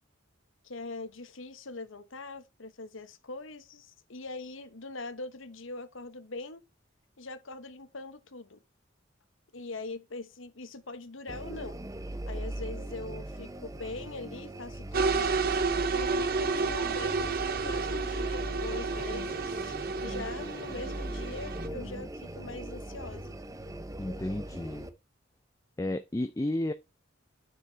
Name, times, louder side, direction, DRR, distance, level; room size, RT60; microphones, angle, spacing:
voice 1, 0.6-6.6 7.2-8.6 9.5-11.8 12.3-15.4 15.9-19.8 20.0-23.4, left 3 dB, 75° left, 1.1 m, -42 dB
sound 1, 11.3-24.9, right 1 dB, 15° right, 0.8 m, -39 dB
sound 2, 14.9-21.7, right 4 dB, 50° right, 0.8 m, -31 dB
voice 2, 24.0-24.9 25.8-26.7, left 1 dB, 15° left, 0.5 m, -32 dB
9.5 x 6.0 x 4.5 m
head